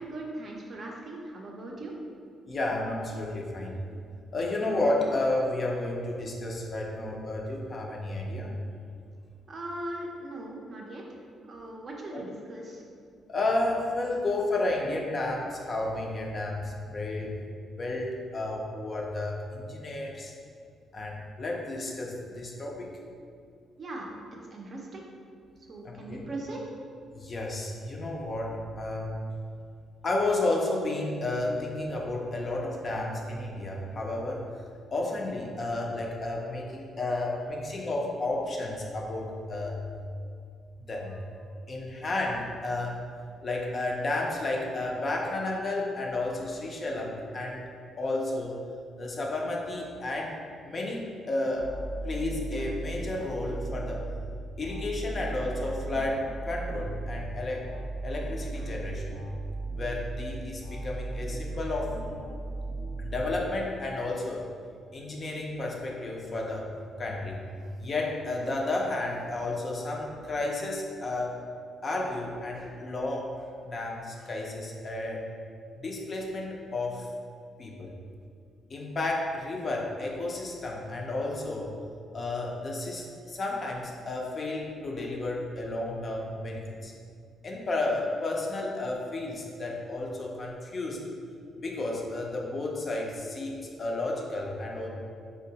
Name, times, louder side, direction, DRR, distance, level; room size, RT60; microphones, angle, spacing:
voice 1, 0.0-1.9 9.5-11.0 11.4-12.8 23.8-24.2 24.5-25.0 25.7-26.6, right 1 dB, 40° right, -1 dB, 0.4 m, -39 dB
voice 2, 2.5-3.9 4.3-8.5 12.1-12.2 13.3-17.4 17.8-20.3 20.9-23.0 25.8-26.3 27.1-29.3 30.0-34.4 34.9-39.9 40.9-41.2 41.7-43.0 43.4-47.6 48.0-48.6 49.0-50.4 50.6-51.8 52.0-54.1 54.6-57.7 58.0-59.2 59.7-62.0 63.0-64.5 64.9-66.7 67.0-67.4 67.8-71.4 71.8-73.3 73.6-75.3 75.8-77.1 77.6-78.0 78.7-81.7 82.1-86.9 87.4-91.1 91.6-94.9, left 2 dB, 35° left, -1 dB, 0.4 m, -32 dB
sound 1, 51.6-63.8, right 2 dB, 80° left, 0.9 m, -36 dB
3.6 x 2.2 x 2.7 m, 2.3 s
cardioid pair, 125°, 0 cm